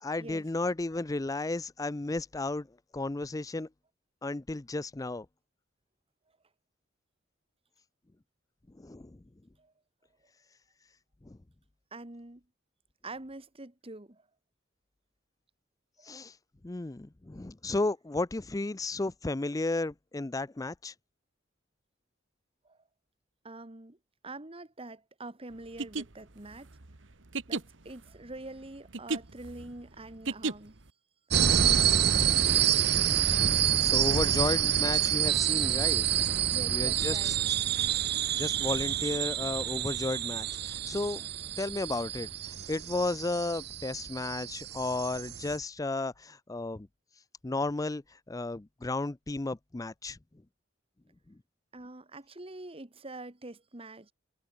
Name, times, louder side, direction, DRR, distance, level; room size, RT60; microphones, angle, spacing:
voice 1, 0.0-2.7 2.9-3.7 4.2-5.3 8.7-9.2 11.2-11.4 16.0-16.3 16.6-20.9 33.8-36.1 36.7-37.4 38.3-41.3 41.6-42.3 42.7-46.9 47.4-50.2 51.3-51.4, left 2 dB, 20° left, 0.5 m, -33 dB
voice 2, 11.9-12.4 13.0-14.3 16.0-16.1 22.6-22.8 23.4-24.0 24.2-26.7 27.5-30.8 36.5-37.4 51.7-54.1, right 2 dB, 30° right, 1.8 m, -45 dB
sound 1, 25.6-30.9, right 3 dB, 80° right, 1.5 m, -35 dB
sound 2, 31.3-45.6, right 10 dB, 60° right, 0.9 m, -28 dB
head